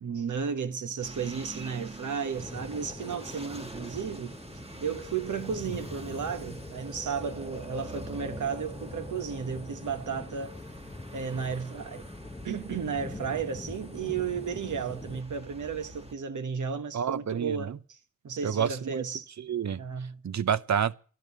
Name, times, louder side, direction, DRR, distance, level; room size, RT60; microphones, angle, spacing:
voice 1, 0.0-4.4 4.8-10.7 11.1-12.1 12.4-18.0 18.2-19.3 19.8-20.2, right 6 dB, 85° right, 1.2 m, -33 dB
sound 1, 1.0-16.1, right 1 dB, 20° right, 1.5 m, -45 dB
sound 2, 2.3-15.2, left 2 dB, 15° left, 0.8 m, -44 dB
voice 2, 16.9-17.8 18.4-19.0 19.4-19.8 20.2-21.0, right 8 dB, 65° right, 0.7 m, -29 dB
12.0 x 11.0 x 8.2 m
cardioid pair, 55°, 30 cm